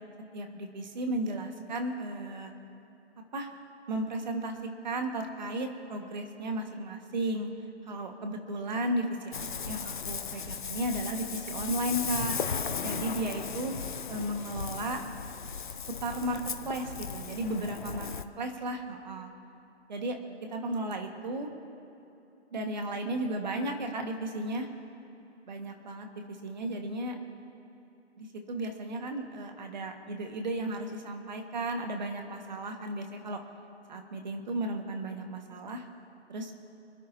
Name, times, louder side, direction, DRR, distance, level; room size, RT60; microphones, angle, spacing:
voice 1, 0.3-2.5 3.3-3.5 3.9-4.5 4.8-7.5 7.9-12.4 12.8-13.7 14.1-15.0 16.0-16.4 16.6-18.1 18.4-19.3 19.9-20.2 20.5-21.5 22.5-24.7 25.5-26.1 26.4-27.1 28.2-33.4 33.9-35.8 36.3-36.5, right 1 dB, 40° right, 4 dB, 1.7 m, -34 dB
Ocean, 9.3-18.2, left 6 dB, 45° left, 0.7 m, -36 dB
28.0 x 10.0 x 2.8 m, 2.7 s
hypercardioid pair, 165°, 35 cm